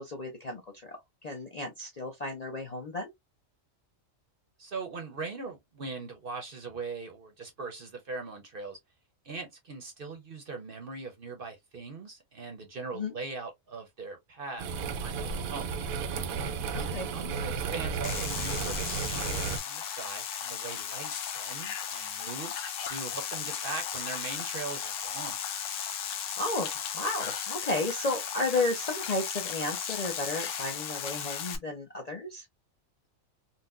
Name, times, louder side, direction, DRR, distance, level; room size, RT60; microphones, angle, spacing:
voice 1, 0.0-3.1 12.9-13.1 16.7-17.1 26.4-26.7 26.9-32.5, left 2 dB, 45° left, 0.5 m, -33 dB
voice 2, 4.6-8.8 9.2-14.7 15.0-15.7 16.7-16.9 17.1-25.4, right 4 dB, 50° right, 0.8 m, -40 dB
sound 1, 14.6-19.6, right 5 dB, 85° right, 1.0 m, -33 dB
sound 2, 18.0-31.6, left 8 dB, 70° left, 1.0 m, -35 dB
4.0 x 2.2 x 2.4 m
omnidirectional pair, 1.4 m